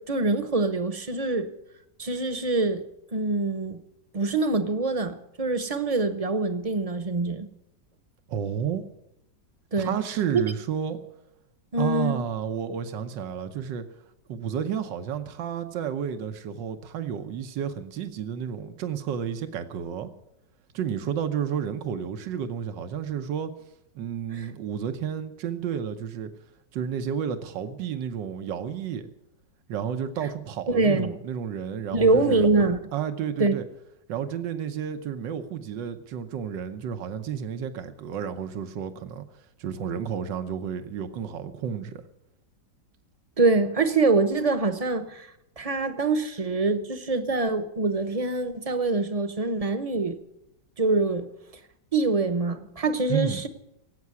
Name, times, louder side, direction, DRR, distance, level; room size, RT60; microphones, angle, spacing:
voice 1, 0.0-1.5 2.0-2.8 3.1-3.8 4.1-7.5 9.7-10.0 10.3-10.4 11.7-12.2 24.3-24.5 30.7-31.2 31.9-32.8 33.4-33.5 43.4-45.3 45.6-50.2 50.8-51.3 51.9-53.5, right 3 dB, 30° right, 0.8 m, -24 dB
voice 2, 8.3-8.8 9.8-11.0 11.8-13.8 14.3-20.1 20.7-23.5 23.9-26.3 26.7-29.1 29.7-32.5 32.9-33.6 34.1-39.2 39.6-42.0 53.1-53.4, right 8 dB, 85° right, 1.6 m, -31 dB
17.5 x 8.4 x 9.5 m
omnidirectional pair, 1.9 m